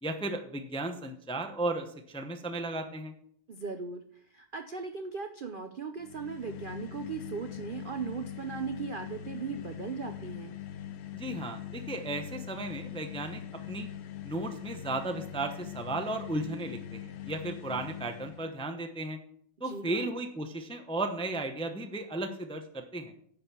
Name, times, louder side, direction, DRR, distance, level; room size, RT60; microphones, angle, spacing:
voice 1, 0.0-3.1 11.1-13.4 13.7-13.9 14.2-19.2 19.6-23.1, right 2 dB, 10° left, 6 dB, 0.3 m, -35 dB
voice 2, 3.5-10.6 19.6-20.1, right 5 dB, 75° right, 7 dB, 0.4 m, -38 dB
sound 1, 6.0-18.6, left 10 dB, 65° left, 0.6 m, -42 dB
10.0 x 5.2 x 6.9 m, 0.63 s
omnidirectional pair, 1.9 m